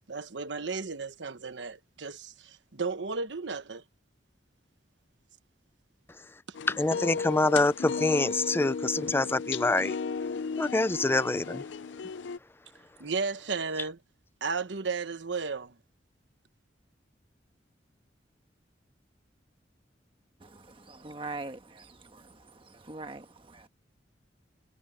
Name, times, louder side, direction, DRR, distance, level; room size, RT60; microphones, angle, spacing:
voice 1, 0.0-3.8 13.0-14.0 14.4-15.7, right 4 dB, 85° right, 1.1 m, -34 dB
sound 1, 6.5-12.4, left 5 dB, 85° left, 0.4 m, -35 dB
voice 2, 6.7-10.0 10.6-11.6, left 2 dB, 15° left, 0.4 m, -26 dB
voice 3, 20.4-22.3 22.9-23.7, right 3 dB, 30° right, 1.3 m, -42 dB
head